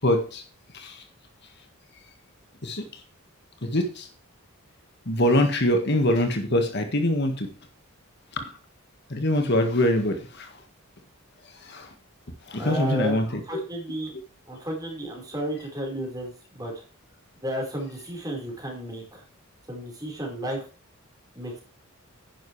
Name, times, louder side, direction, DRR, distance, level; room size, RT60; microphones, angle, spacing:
voice 1, 0.0-0.4 0.7-1.0 2.6-3.0 3.6-4.1 5.1-7.5 8.3-8.6 9.1-10.6 11.5-11.9 12.4-13.3 13.5-13.6, left 1 dB, 50° left, 6 dB, 1.7 m, -24 dB
voice 2, 12.6-14.1 14.5-16.7 17.4-19.2 19.7-20.6 21.3-21.6, equal, 15° right, 0 dB, 4.6 m, -33 dB
10.5 x 10.5 x 3.3 m, 0.37 s
head